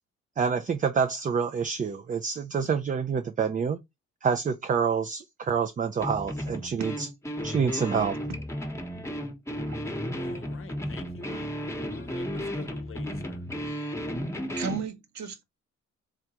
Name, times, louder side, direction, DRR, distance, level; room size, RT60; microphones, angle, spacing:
voice 1, 0.4-3.8 4.2-7.1 7.4-8.1, right 6 dB, 25° right, 0.4 m, -27 dB
sound 1, 6.0-14.9, equal, 10° left, 1.0 m, -34 dB
voice 2, 10.2-13.4, left 6 dB, 45° left, 0.8 m, -47 dB
voice 3, 14.6-15.4, right 6 dB, 65° right, 1.0 m, -35 dB
3.6 x 3.5 x 2.9 m
cardioid pair, 90°, 30 cm